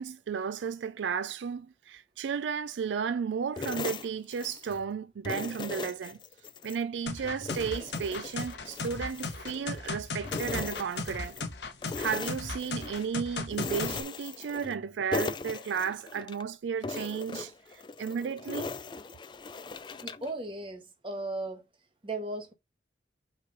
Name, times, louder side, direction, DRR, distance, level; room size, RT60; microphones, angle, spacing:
voice 1, 0.0-6.2 6.6-11.4 12.0-18.7, right 6 dB, 80° right, 0.4 m, -34 dB
sound 1, 3.6-4.8 5.2-6.8 7.2-9.9 10.2-11.5 11.8-13.1 13.5-14.8 15.1-16.4 16.8-20.3, left 4 dB, 25° left, 0.3 m, -38 dB
sound 2, 7.1-14.0, left 3 dB, 75° left, 1.1 m, -37 dB
voice 2, 20.0-21.6 22.0-22.5, right 2 dB, 30° right, 1.4 m, -36 dB
5.9 x 3.2 x 5.3 m
head